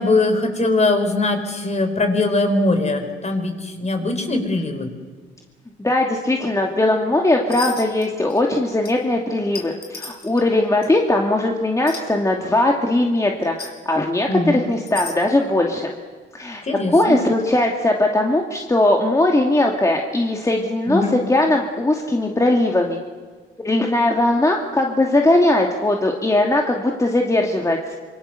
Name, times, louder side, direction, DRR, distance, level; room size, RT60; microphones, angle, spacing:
voice 1, 0.0-4.9 14.3-14.6 16.6-17.2 20.9-21.2, left 2 dB, 35° left, 6 dB, 4.5 m, -21 dB
voice 2, 5.8-15.9 16.3-16.6 16.9-23.0 23.6-28.0, left 1 dB, 15° left, 1 dB, 2.5 m, -19 dB
sound 1, 7.5-8.0 8.3-8.6 8.8-8.9 9.5-10.4 10.8-10.9 11.9-12.0 13.4-13.7 14.7-15.2, left 4 dB, 55° left, 5.5 m, -33 dB
26.5 x 24.0 x 6.8 m, 1.5 s
cardioid pair, 90°, 20 cm